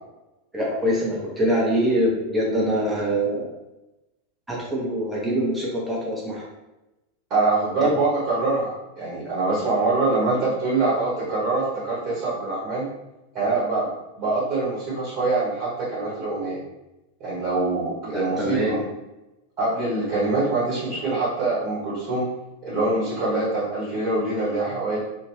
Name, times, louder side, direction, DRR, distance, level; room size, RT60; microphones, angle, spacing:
voice 1, 0.5-3.5 4.5-6.5 7.8-7.9 18.0-18.8, equal, 10° right, -4 dB, 1.0 m, -24 dB
voice 2, 7.3-12.9 13.3-16.6 17.2-18.8 19.6-22.3 22.6-25.0, right 3 dB, 35° right, -9 dB, 1.3 m, -24 dB
2.7 x 2.5 x 3.2 m, 0.98 s
figure-of-eight pair, 90°, 0 cm